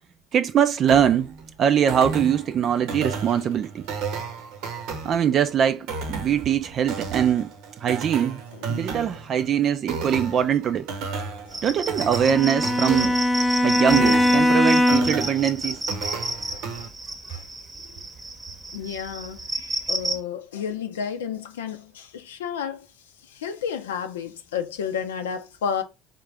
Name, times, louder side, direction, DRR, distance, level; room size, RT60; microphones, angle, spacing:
voice 1, 0.3-3.9 5.0-7.5 7.8-8.4 8.7-10.9 11.6-13.2 13.6-15.8, right 9 dB, 50° right, 0.4 m, -22 dB
sound 1, 0.9-16.9, right 5 dB, 70° right, 0.8 m, -33 dB
voice 2, 8.5-8.9 11.5-11.6 16.5-16.6 17.3-17.4 18.7-22.9 23.3-25.8, left 7 dB, 85° left, 0.5 m, -32 dB
sound 2, 11.5-20.2, right 2 dB, 20° right, 0.8 m, -31 dB
Bowed string instrument, 12.2-15.3, left 1 dB, 15° left, 0.7 m, -20 dB
3.7 x 2.7 x 3.4 m
hypercardioid pair, 65°, 0 cm